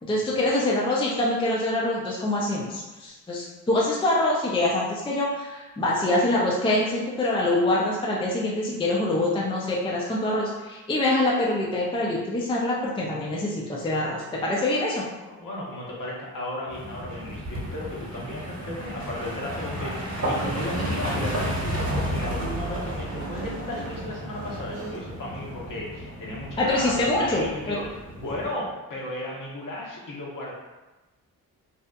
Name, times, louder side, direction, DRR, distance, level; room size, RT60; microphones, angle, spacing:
voice 1, 0.0-15.0 26.6-27.8, left 1 dB, 10° left, -4 dB, 0.5 m, -25 dB
voice 2, 15.2-30.5, left 1 dB, 45° left, -4 dB, 0.9 m, -35 dB
sound 1, 16.7-28.5, equal, 35° right, 1.1 m, -32 dB
Guitar, 20.4-25.5, right 6 dB, 60° right, 0.7 m, -41 dB
2.8 x 2.0 x 2.3 m, 1.1 s
hypercardioid pair, 45°, 44 cm